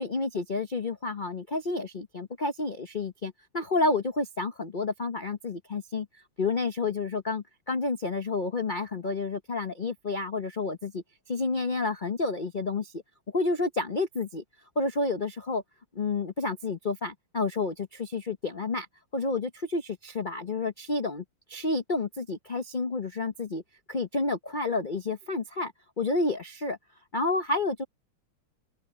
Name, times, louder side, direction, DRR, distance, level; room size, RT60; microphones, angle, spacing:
voice 1, 0.0-6.1 6.4-13.0 13.3-14.4 14.8-15.6 15.9-18.9 19.1-23.6 23.9-25.7 26.0-26.8 27.1-27.8, left 3 dB, 35° left, 0.8 m, -30 dB
open air
omnidirectional pair, 2.2 m